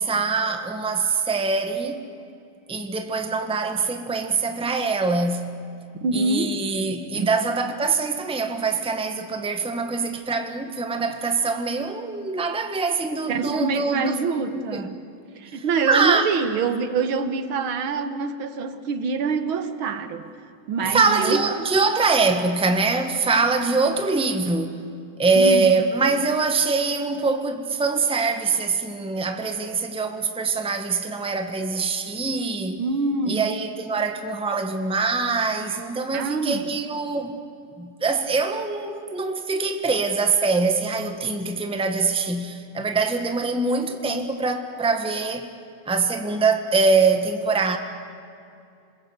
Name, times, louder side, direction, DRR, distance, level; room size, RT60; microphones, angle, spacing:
voice 1, 0.0-2.0 2.7-5.5 6.1-14.2 14.5-14.9 15.5-16.3 20.8-24.8 25.2-32.8 33.3-37.4 37.8-45.5 45.8-47.8, right 4 dB, 5° right, 1.2 m, -23 dB
voice 2, 6.0-6.5 7.1-7.3 13.3-15.0 15.4-20.3 20.7-21.4 25.4-25.7 32.8-33.5 36.1-36.7, right 4 dB, 75° right, 2.1 m, -25 dB
27.5 x 21.5 x 8.2 m
omnidirectional pair, 2.3 m